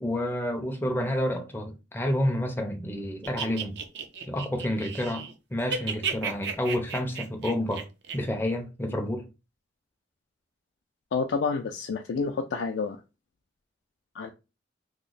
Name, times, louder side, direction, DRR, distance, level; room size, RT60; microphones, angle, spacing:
voice 1, 0.0-3.8 4.2-7.9 8.1-9.3, left 1 dB, 10° left, 0.5 m, -29 dB
sound 1, 3.2-5.3 5.6-8.2, right 6 dB, 65° right, 0.5 m, -33 dB
voice 2, 11.1-13.0 14.1-14.3, left 4 dB, 70° left, 0.3 m, -29 dB
2.9 x 2.0 x 3.9 m
head